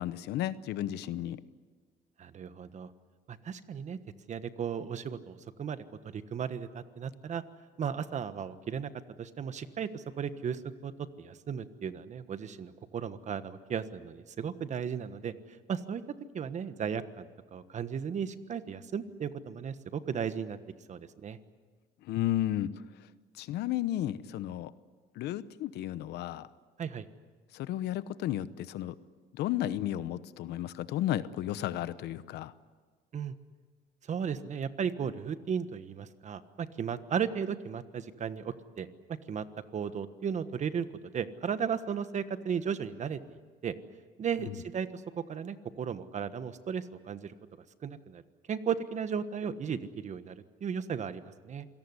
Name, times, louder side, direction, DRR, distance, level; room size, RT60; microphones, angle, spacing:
voice 1, 0.0-1.4 22.0-22.7 23.4-24.7 25.2-26.5 27.5-29.0 29.3-32.5, left 13 dB, 80° left, 15 dB, 1.0 m, -33 dB
voice 2, 2.2-2.9 3.3-4.0 4.3-7.4 7.8-8.9 9.2-10.9 11.2-16.0 16.3-20.6 20.9-21.4 26.8-27.1 33.1-33.3 34.1-39.4 39.7-43.7 44.2-47.3 47.8-48.2 48.5-51.7, right 7 dB, 45° right, 12 dB, 1.4 m, -35 dB
27.0 x 18.0 x 9.8 m, 1.5 s
cardioid pair, 110°, 17 cm